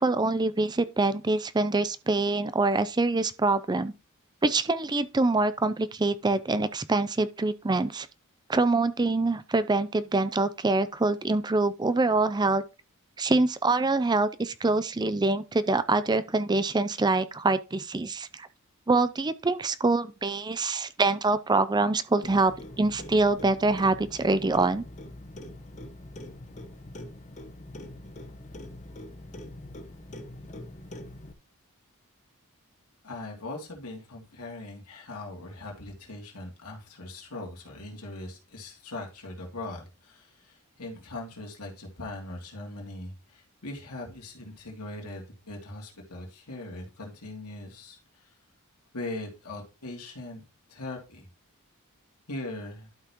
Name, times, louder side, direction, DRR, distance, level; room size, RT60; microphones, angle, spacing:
voice 1, 0.0-3.9 4.4-8.1 8.5-12.6 13.2-18.5 18.9-22.5 22.8-24.8, right 3 dB, 20° right, 0.5 m, -25 dB
Clock, 22.2-31.3, left 1 dB, 35° left, 1.0 m, -43 dB
voice 2, 33.0-48.3 48.9-50.4 50.7-51.3 52.3-52.9, left 2 dB, 85° left, 2.8 m, -40 dB
12.0 x 5.7 x 3.0 m
head